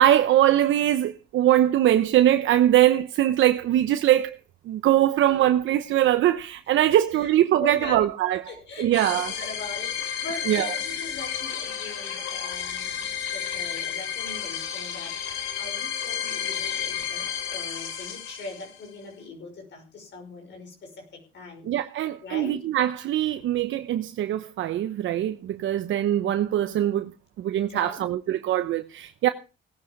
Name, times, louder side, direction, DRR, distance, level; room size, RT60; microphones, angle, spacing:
voice 1, 0.0-4.4 4.7-8.4 8.8-9.3 10.5-10.7 21.7-27.1 27.4-29.3, right 12 dB, 75° right, 0.9 m, -22 dB
voice 2, 7.6-8.0 8.5-21.7 22.2-22.6 27.7-28.1, left 3 dB, 65° left, 5.9 m, -41 dB
sound 1, 8.9-18.9, left 9 dB, 90° left, 3.8 m, -32 dB
18.0 x 9.4 x 5.3 m
cardioid pair, 90°, 20 cm